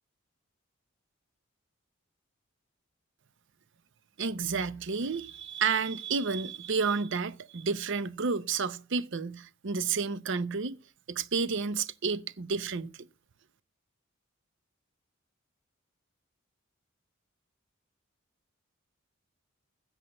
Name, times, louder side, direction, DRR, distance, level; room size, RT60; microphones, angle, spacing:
voice 1, 4.2-10.8 11.1-13.1, right 5 dB, 60° right, 0.6 m, -31 dB
8.1 x 7.8 x 7.4 m
head